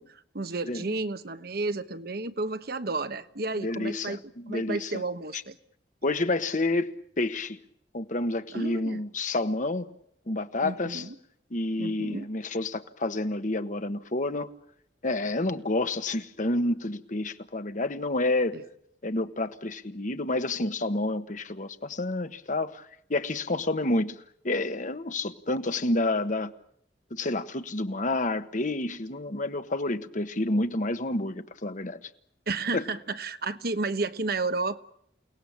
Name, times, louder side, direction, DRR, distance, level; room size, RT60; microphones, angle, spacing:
voice 1, 0.0-4.2 4.5-5.6 8.5-9.0 10.6-11.1 11.8-12.3 18.5-18.6 32.5-34.8, right 3 dB, 60° right, 1.1 m, -32 dB
voice 2, 3.6-4.2 4.4-5.0 6.0-7.6 7.9-9.9 10.3-11.0 11.5-14.5 15.0-18.6 19.0-24.2 24.4-26.5 27.1-32.1 32.7-32.8, left 2 dB, 45° left, 1.4 m, -29 dB
29.0 x 18.5 x 8.8 m
head